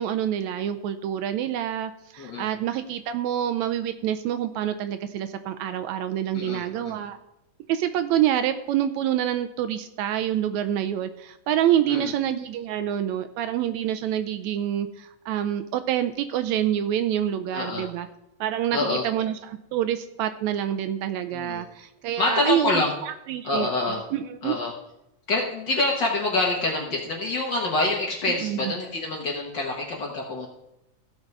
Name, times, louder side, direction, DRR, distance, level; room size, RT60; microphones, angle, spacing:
voice 1, 0.0-7.2 7.7-18.1 18.4-23.7 24.1-24.5 28.4-28.7, right 10 dB, 80° right, 9 dB, 1.8 m, -27 dB
voice 2, 2.2-2.5 6.3-7.0 11.9-12.1 17.5-17.8 18.7-19.0 21.3-21.6 22.2-23.0 23.4-24.0 24.4-24.7 25.3-30.5, left 2 dB, 50° left, -1 dB, 1.5 m, -26 dB
15.5 x 5.5 x 4.6 m, 0.86 s
omnidirectional pair, 3.4 m